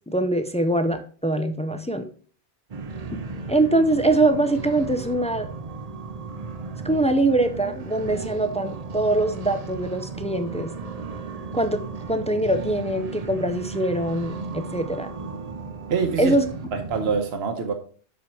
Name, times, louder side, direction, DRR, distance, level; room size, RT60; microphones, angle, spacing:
voice 1, 0.1-2.1 3.5-5.5 6.8-10.7 11.5-11.8 12.1-15.1 16.2-16.5, right 2 dB, 10° left, 8 dB, 0.3 m, -23 dB
sound 1, 2.7-17.2, right 4 dB, 40° right, 0.7 m, -35 dB
voice 2, 15.9-16.4 16.7-17.7, right 5 dB, 65° right, 4 dB, 1.2 m, -25 dB
7.3 x 5.5 x 4.4 m, 0.42 s
omnidirectional pair, 1.1 m